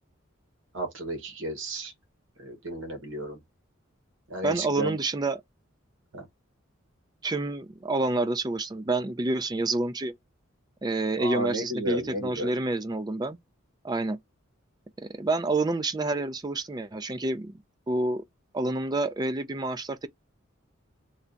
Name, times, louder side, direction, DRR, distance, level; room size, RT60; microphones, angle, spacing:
voice 1, 0.7-1.9 2.4-3.4 4.3-5.0 6.1-6.2 11.2-12.5, right 1 dB, 70° right, 1.1 m, -33 dB
voice 2, 4.4-5.4 7.2-10.1 10.8-13.4 13.8-14.2 15.0-17.5 17.9-18.2 18.5-20.1, right 2 dB, 20° right, 0.4 m, -28 dB
3.2 x 2.3 x 3.8 m
head